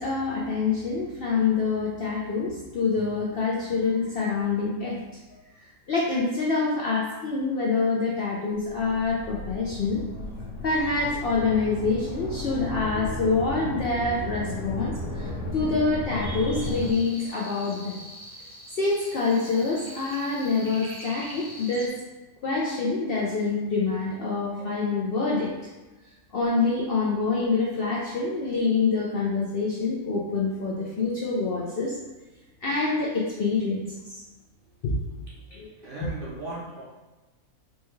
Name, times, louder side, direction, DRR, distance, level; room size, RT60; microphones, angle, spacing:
voice 1, 0.0-5.0 5.6-10.0 10.6-18.0 18.8-21.9 22.4-25.5 26.3-31.9 32.6-34.2 34.8-35.2 35.5-35.7, left 4 dB, 65° left, -5 dB, 0.6 m, -26 dB
sound 1, 8.6-16.9, left 2 dB, 45° left, 0.9 m, -34 dB
sound 2, 16.6-21.9, equal, 15° right, 0.4 m, -43 dB
voice 2, 35.3-36.8, right 2 dB, 50° right, -6 dB, 0.7 m, -38 dB
4.4 x 2.2 x 3.0 m, 1.1 s
omnidirectional pair, 1.5 m